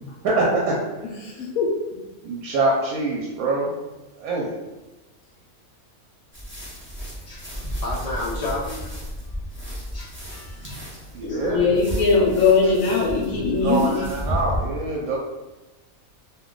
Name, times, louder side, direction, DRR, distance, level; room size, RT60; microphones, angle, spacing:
voice 1, 0.2-0.8 2.2-3.7 4.2-4.5 11.1-11.7 13.6-15.2, right 2 dB, 90° right, -2 dB, 1.0 m, -24 dB
voice 2, 1.2-1.7 11.2-14.1, left 4 dB, 75° left, -2 dB, 1.0 m, -20 dB
sound 1, 6.3-14.6, equal, 15° right, 0.5 m, -33 dB
voice 3, 7.0-8.9 9.2-11.7 12.6-12.7 13.0-14.4, left 2 dB, 45° left, -5 dB, 0.5 m, -35 dB
2.5 x 2.2 x 3.7 m, 1.1 s
omnidirectional pair, 1.5 m